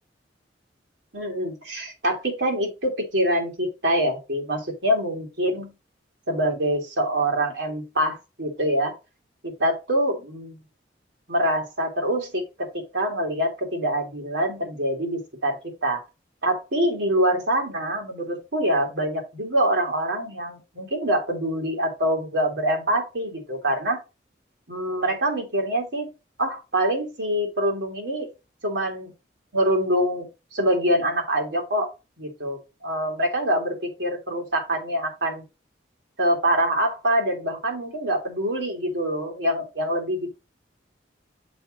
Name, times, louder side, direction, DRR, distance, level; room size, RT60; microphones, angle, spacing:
voice 1, 1.1-5.7 6.3-8.9 9.4-10.6 11.3-15.6 15.8-16.0 16.4-24.0 24.7-26.1 26.4-28.3 28.6-29.1 29.5-31.9 32.2-35.4 36.2-40.4, equal, 80° right, 1 dB, 2.5 m, -25 dB
6.9 x 4.0 x 4.9 m, 0.27 s
head